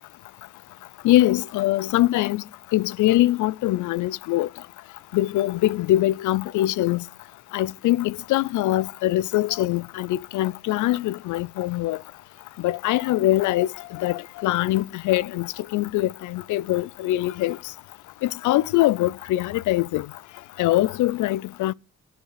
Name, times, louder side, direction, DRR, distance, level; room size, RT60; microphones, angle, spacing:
voice 1, 1.0-2.4 2.7-4.5 5.1-7.0 7.5-12.0 12.6-17.6 18.2-20.1 20.6-21.7, left 15 dB, 75° left, 0.5 m, -23 dB
8.9 x 7.9 x 6.6 m
cardioid pair, 90°, 30 cm